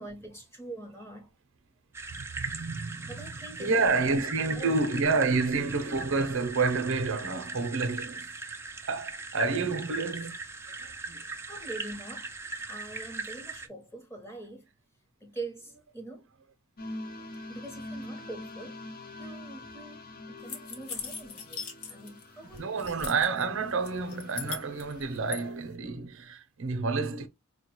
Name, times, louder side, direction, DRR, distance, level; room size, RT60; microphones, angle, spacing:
voice 1, 0.0-1.3 3.0-3.9 4.5-4.8 11.5-12.3 12.7-14.7 15.2-16.3 17.5-18.8 19.2-22.8, right 2 dB, 10° left, 0.9 m, -44 dB
sound 1, 1.9-13.7, right 3 dB, 10° right, 0.4 m, -40 dB
voice 2, 2.1-3.3 3.6-8.3 8.9-10.3 10.8-11.2 22.6-27.3, right 4 dB, 60° right, 0.6 m, -29 dB
sound 2, 16.8-25.5, left 1 dB, 45° left, 0.6 m, -45 dB
sound 3, 20.5-22.2 22.5-23.4 23.9-25.4, left 6 dB, 90° left, 1.0 m, -39 dB
4.6 x 2.2 x 2.9 m
head